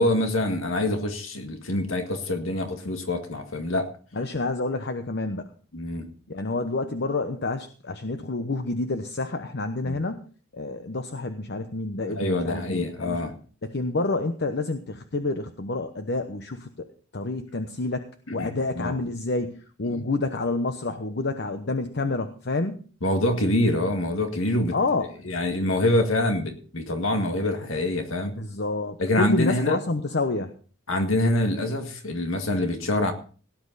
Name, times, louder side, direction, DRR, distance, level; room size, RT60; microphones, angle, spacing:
voice 1, 0.0-3.9 5.7-6.1 9.8-10.0 12.1-13.3 18.3-19.0 19.9-20.0 23.0-24.8 25.2-28.3 29.0-29.8 30.9-33.1, left 1 dB, 85° left, 5 dB, 2.0 m, -25 dB
voice 2, 4.1-5.5 6.3-10.2 10.5-13.2 13.6-16.7 17.1-22.8 24.7-25.1 28.3-30.5, left 3 dB, 55° left, 8 dB, 1.0 m, -28 dB
18.0 x 10.5 x 4.1 m, 0.40 s
head